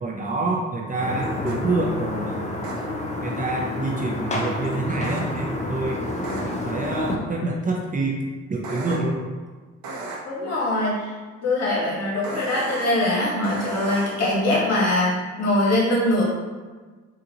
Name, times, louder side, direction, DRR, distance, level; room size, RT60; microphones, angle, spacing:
voice 1, 0.0-2.4 3.2-6.0 6.4-8.2 8.5-9.2, right 2 dB, 25° right, -1 dB, 0.5 m, -27 dB
sound 1, 1.0-7.2, left 2 dB, 25° left, 0.6 m, -29 dB
sound 2, 1.5-1.6 2.6-2.7 5.0-5.2 6.2-6.4 8.6-8.9 9.8-10.2 12.2-12.9 13.4-14.1, right 3 dB, 75° right, 0.7 m, -33 dB
voice 2, 10.3-16.3, left 1 dB, 60° left, -5 dB, 1.3 m, -22 dB
3.9 x 2.5 x 2.8 m, 1.4 s
cardioid pair, 90°, 30 cm